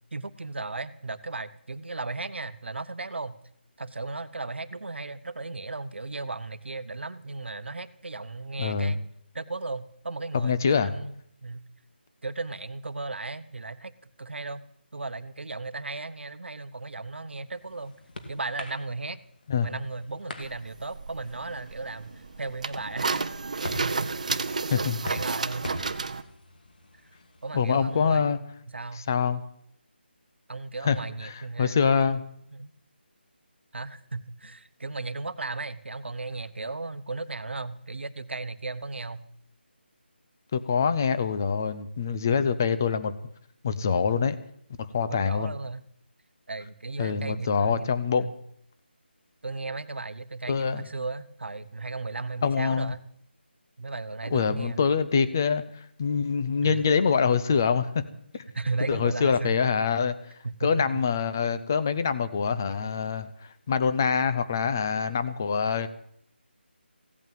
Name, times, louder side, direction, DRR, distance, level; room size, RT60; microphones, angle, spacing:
voice 1, 0.1-3.4 3.8-9.0 9.3-11.6 12.2-13.9 14.2-14.6 14.9-17.9 18.3-19.2 19.6-25.7 27.4-28.5 28.7-29.1 30.5-32.1 32.5-32.7 33.7-39.2 45.1-45.8 46.5-48.4 49.4-53.0 53.8-54.9 56.6-56.8 58.5-59.6 60.4-61.0 65.8-65.9, right 3 dB, 75° right, 13 dB, 1.1 m, -36 dB
voice 2, 8.6-9.0 10.3-10.9 19.5-19.7 24.7-25.0 27.5-28.4 28.9-29.4 30.8-31.0 31.2-32.2 40.5-43.1 43.6-44.4 44.9-45.5 47.0-48.3 50.5-50.9 52.4-52.9 54.3-58.0 58.3-58.4 58.9-60.1 60.6-65.9, left 6 dB, 15° left, 12 dB, 0.6 m, -25 dB
sound 1, 17.1-28.2, left 1 dB, 50° left, 2.6 m, -44 dB
sound 2, 20.4-26.2, right 4 dB, 40° right, 0.8 m, -32 dB
16.5 x 8.5 x 9.2 m, 0.68 s
figure-of-eight pair, 175°, 6 cm